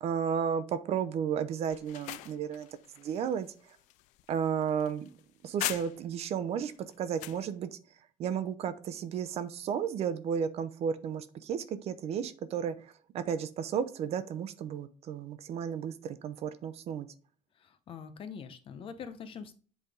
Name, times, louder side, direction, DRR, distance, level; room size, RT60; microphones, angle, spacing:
voice 1, 0.0-2.7 3.0-3.5 4.3-5.1 5.4-6.7 7.0-7.7 8.2-17.1, right 7 dB, 60° right, 12 dB, 0.7 m, -33 dB
sound 1, 1.7-6.3 6.7-7.5, left 16 dB, 85° left, 0.4 m, -41 dB
voice 2, 17.5-19.5, left 6 dB, 50° left, 10 dB, 0.9 m, -44 dB
8.1 x 3.5 x 3.6 m, 0.41 s
cardioid pair, 115°, 12 cm